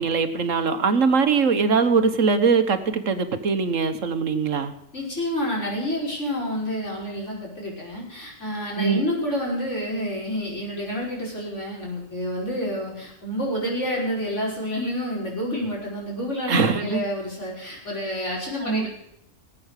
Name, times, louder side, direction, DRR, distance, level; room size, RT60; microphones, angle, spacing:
voice 1, 0.0-4.7 8.8-9.0 16.5-17.0 18.6-18.9, right 5 dB, 75° right, 9 dB, 1.7 m, -22 dB
voice 2, 4.9-18.9, equal, 60° left, -3 dB, 5.9 m, -29 dB
19.0 x 8.7 x 6.6 m, 0.76 s
omnidirectional pair, 1.4 m